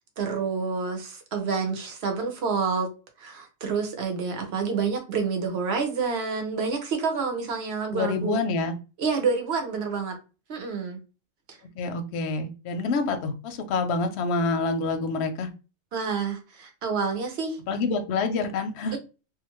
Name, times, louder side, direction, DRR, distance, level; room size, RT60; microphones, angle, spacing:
voice 1, 0.2-2.9 3.2-8.4 9.0-10.2 10.5-11.0 11.5-11.6 15.9-17.6 18.9-19.0, right 5 dB, 55° right, 0.8 m, -28 dB
voice 2, 7.9-8.7 11.8-15.5 17.7-19.0, left 3 dB, 60° left, 0.7 m, -27 dB
2.4 x 2.4 x 2.9 m
omnidirectional pair, 1.5 m